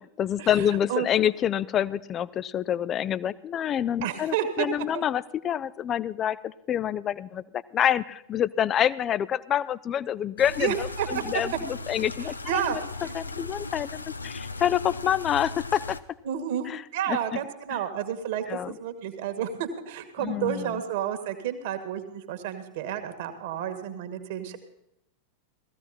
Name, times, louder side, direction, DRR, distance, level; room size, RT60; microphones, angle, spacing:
voice 1, 0.2-16.0 16.7-16.8 17.1-17.4 17.7-17.8 18.5-18.8 20.2-20.8, left 10 dB, 30° left, 19 dB, 0.5 m, -27 dB
voice 2, 4.0-4.7 4.9-5.0 10.6-11.2 12.5-13.1 16.3-24.6, right 9 dB, 50° right, 8 dB, 1.9 m, -31 dB
sound 1, 10.4-16.0, left 3 dB, 80° left, 0.7 m, -37 dB
18.0 x 15.0 x 4.3 m, 0.82 s
figure-of-eight pair, 90°, 0 cm